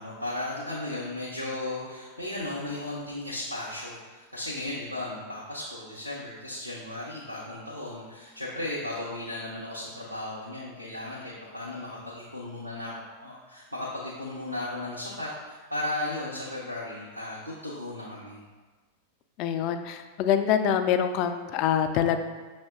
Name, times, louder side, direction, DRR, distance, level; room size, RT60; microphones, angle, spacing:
voice 1, 0.0-18.4, left 1 dB, 90° right, -7 dB, 0.6 m, -35 dB
voice 2, 19.4-22.2, left 9 dB, 40° left, 8 dB, 0.3 m, -25 dB
6.3 x 2.1 x 3.6 m, 1.3 s
figure-of-eight pair, 90°, 0 cm